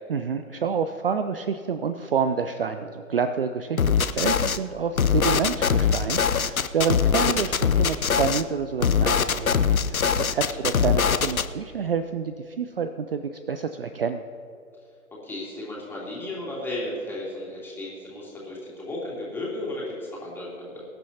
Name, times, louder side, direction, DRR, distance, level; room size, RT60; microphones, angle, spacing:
voice 1, 0.1-13.2 13.5-14.2, right 6 dB, 45° right, 9 dB, 0.5 m, -28 dB
sound 1, 3.8-4.6 5.0-8.4 8.8-11.5, left 6 dB, 75° left, 0.8 m, -22 dB
voice 2, 10.2-10.7 15.1-20.8, left 1 dB, 5° left, -6 dB, 3.0 m, -35 dB
23.5 x 11.0 x 2.8 m, 2.7 s
figure-of-eight pair, 130°, 42 cm